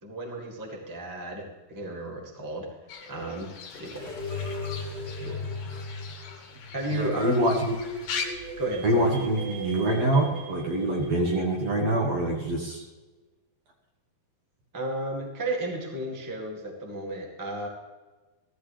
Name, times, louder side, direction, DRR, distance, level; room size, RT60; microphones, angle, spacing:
voice 1, 0.0-2.7 3.0-3.5 3.8-4.0 6.7-7.5 8.6-9.1 14.7-17.7, right 1 dB, 15° right, -1 dB, 0.7 m, -33 dB
Fowl / Bird, 2.9-8.3, left 6 dB, 60° left, 2.8 m, -40 dB
sound 1, 4.0-12.0, left 1 dB, 80° right, 7.1 m, -38 dB
voice 2, 5.2-5.8 6.9-7.8 8.8-12.8, right 1 dB, 60° right, 0 dB, 1.9 m, -25 dB
15.0 x 14.0 x 3.2 m, 1.2 s
omnidirectional pair, 4.5 m